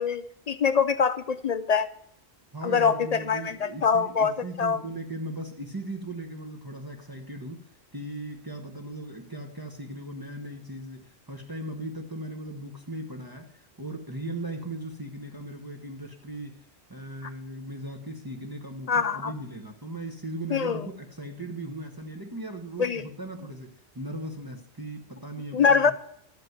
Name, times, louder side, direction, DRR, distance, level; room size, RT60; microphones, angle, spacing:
voice 1, 0.0-1.9 2.6-4.3 4.6-4.8 18.9-19.3 20.5-20.9 22.8-23.0 25.5-25.9, left 6 dB, 55° left, 13 dB, 0.5 m, -24 dB
voice 2, 2.5-16.6 16.9-25.9, right 1 dB, 20° right, 2 dB, 1.1 m, -38 dB
12.5 x 5.2 x 7.8 m, 0.71 s
omnidirectional pair, 1.1 m